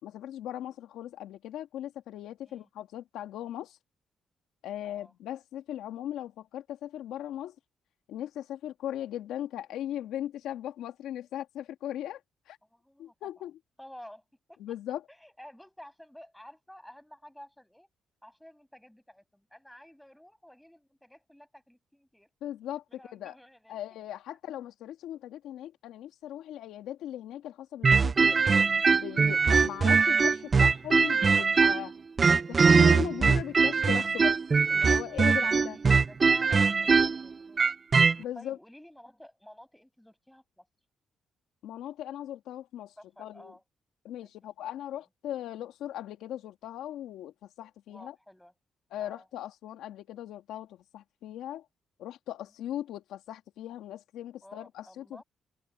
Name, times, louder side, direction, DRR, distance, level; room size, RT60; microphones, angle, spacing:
voice 1, 0.0-3.8 4.6-7.6 8.1-12.2 12.5-12.6 13.0-13.5 14.6-15.0 22.4-23.4 23.7-28.4 28.9-31.9 32.5-34.4 34.7-35.8 38.2-38.6 41.6-42.9 43.2-43.5 44.0-48.2 48.9-51.7 52.0-55.2, left 12 dB, 90° left, 2.3 m, -38 dB
voice 2, 4.8-5.1 12.6-13.3 13.8-14.2 14.5-14.8 15.1-17.9 18.2-22.3 22.9-23.8 24.1-24.2 29.3-29.6 35.4-37.7 38.1-40.7 43.0-43.6 44.2-44.3 44.6-44.7 44.9-45.1 47.9-48.5 49.0-49.3 54.4-55.2, left 1 dB, 5° left, 6.6 m, -52 dB
sound 1, 27.8-31.9 32.2-38.2, right 5 dB, 40° right, 0.3 m, -22 dB
cardioid pair, 85°, 0 cm